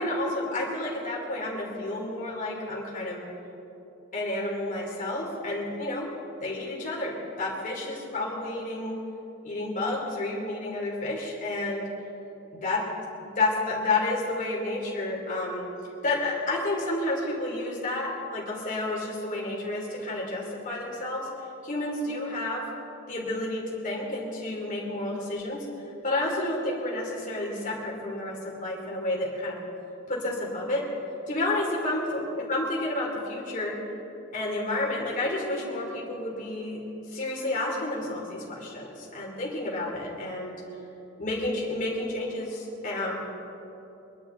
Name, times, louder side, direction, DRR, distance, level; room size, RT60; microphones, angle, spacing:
voice 1, 0.0-3.3 4.1-6.1 6.4-9.0 9.4-11.9 12.6-12.8 13.2-15.7 16.0-21.3 21.6-22.6 23.1-25.6 26.0-29.6 30.1-30.8 31.3-33.8 34.3-36.8 37.1-40.6 41.2-43.2, left 2 dB, 40° left, -4 dB, 3.3 m, -30 dB
25.5 x 11.5 x 4.0 m, 2.9 s
head